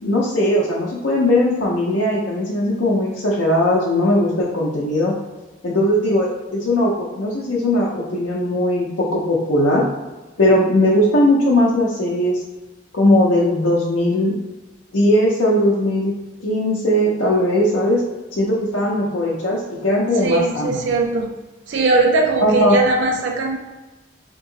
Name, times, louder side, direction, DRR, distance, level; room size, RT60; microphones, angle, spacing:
voice 1, 0.0-5.2 5.6-9.9 10.4-12.4 12.9-14.4 14.9-16.1 16.4-18.0 18.3-20.8 22.4-22.8, left 1 dB, 85° left, -6 dB, 0.6 m, -18 dB
voice 2, 20.2-21.3 21.7-23.6, right 3 dB, 70° right, 3 dB, 0.3 m, -19 dB
3.0 x 2.7 x 3.8 m, 1.2 s
head